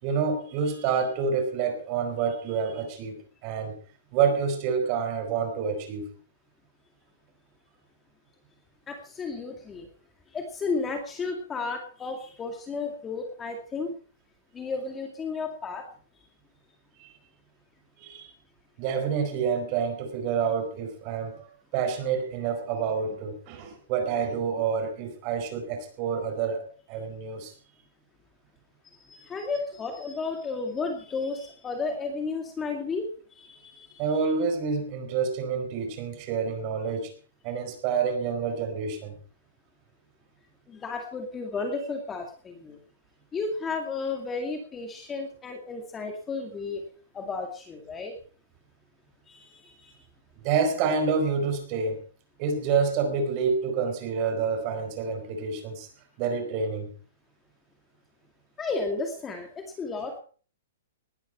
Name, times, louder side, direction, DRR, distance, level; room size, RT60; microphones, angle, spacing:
voice 1, 0.0-3.8 4.1-6.1 17.0-17.1 18.0-18.3 18.8-27.5 34.0-37.1 37.4-39.1 50.4-52.0 52.4-55.9 56.2-56.9, right 6 dB, 30° right, 7 dB, 4.5 m, -28 dB
voice 2, 8.9-9.9 10.3-13.9 14.5-15.9 28.8-34.0 40.7-42.8 43.3-46.8 47.1-48.1 49.3-50.0 58.6-60.2, left 4 dB, 10° left, 4 dB, 2.3 m, -33 dB
19.5 x 12.5 x 4.4 m, 0.40 s
hypercardioid pair, 165°, 0 cm